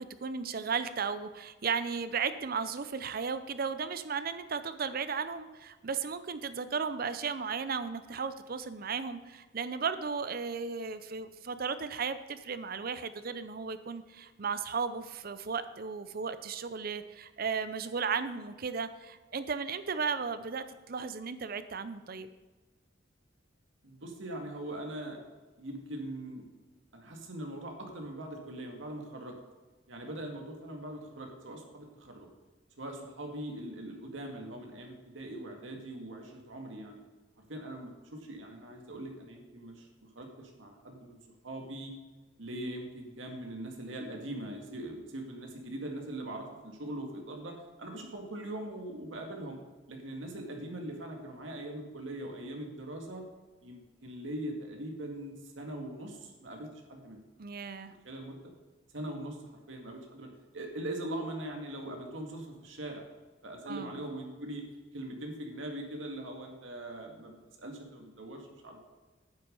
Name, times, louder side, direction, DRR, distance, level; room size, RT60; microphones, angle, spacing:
voice 1, 0.0-22.3 57.4-57.9 63.7-64.0, right 5 dB, 50° right, 12 dB, 0.6 m, -35 dB
voice 2, 23.8-25.2 25.6-26.5 26.9-29.4 29.9-32.3 32.8-37.0 37.5-39.9 40.1-41.2 41.4-41.9 42.4-49.6 49.9-53.2 53.6-57.2 57.9-58.5 58.9-63.1 63.4-64.6 64.9-68.9, right 1 dB, 85° right, 2 dB, 2.1 m, -41 dB
9.1 x 8.5 x 5.4 m, 1.3 s
head